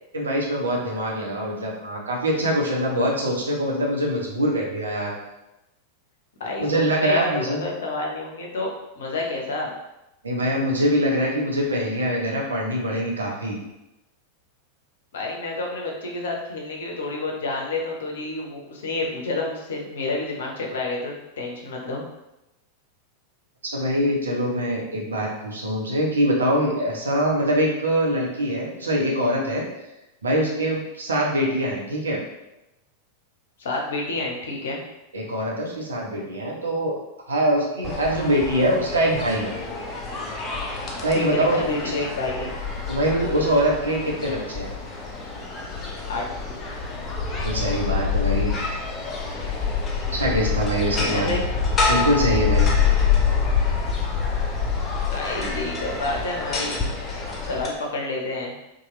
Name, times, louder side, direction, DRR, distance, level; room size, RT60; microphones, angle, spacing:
voice 1, 0.1-5.1 6.6-7.6 10.2-13.6 23.6-29.6 30.2-32.2 35.1-36.9 37.3-39.5 41.0-41.6 42.9-44.7 47.4-48.5 50.1-51.4 51.9-52.7, equal, 70° right, -2 dB, 0.7 m, -23 dB
voice 2, 6.4-8.7 9.0-9.7 15.1-22.0 33.6-34.8 41.1-41.4 41.7-42.5 46.1-46.4 51.0-51.4 55.1-56.8 57.3-58.5, left 2 dB, 60° left, -1 dB, 0.6 m, -29 dB
sound 1, 37.8-57.7, left 5 dB, 25° left, 0.6 m, -26 dB
2.8 x 2.3 x 3.0 m, 0.93 s
figure-of-eight pair, 90°, 0 cm